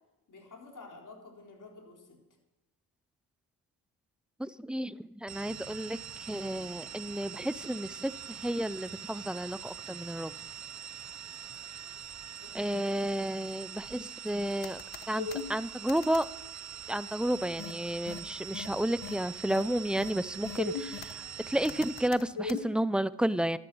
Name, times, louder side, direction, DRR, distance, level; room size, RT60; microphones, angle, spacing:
voice 1, 0.3-2.2 12.4-13.0, left 3 dB, 45° left, 1 dB, 4.1 m, -50 dB
voice 2, 4.4-10.3 12.5-14.8 15.1-16.3 16.9-23.6, right 1 dB, ahead, 17 dB, 0.4 m, -32 dB
sound 1, 5.3-22.1, right 8 dB, 40° right, 0.8 m, -44 dB
sound 2, 14.6-15.4 15.9-16.2 17.6-17.7 18.1-18.2 18.5-18.7 19.0-19.1 19.5-19.6 20.0-20.1 20.4-21.1 21.6-22.6, left 5 dB, 65° left, 1.3 m, -37 dB
13.0 x 12.0 x 6.2 m, 0.98 s
cardioid pair, 75°, 43 cm